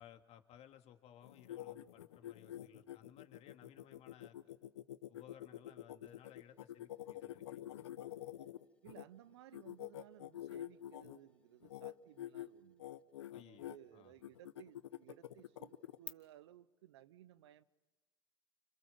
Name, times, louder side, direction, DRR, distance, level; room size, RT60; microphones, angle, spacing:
voice 1, 0.0-4.5 5.1-7.8 13.3-14.1, left 10 dB, 45° left, 6 dB, 2.4 m, -60 dB
sound 1, 1.2-9.0 9.5-11.2 11.6-11.9 12.2-12.5 12.8-13.8 14.2-16.0, left 12 dB, 75° left, 1.0 m, -47 dB
sound 2, 6.1-16.1, left 2 dB, 10° left, 1.6 m, -63 dB
voice 2, 8.8-12.9 13.4-17.6, right 13 dB, 70° right, 17 dB, 1.0 m, -59 dB
29.5 x 27.0 x 7.3 m, 1.1 s
hypercardioid pair, 75°, 14 cm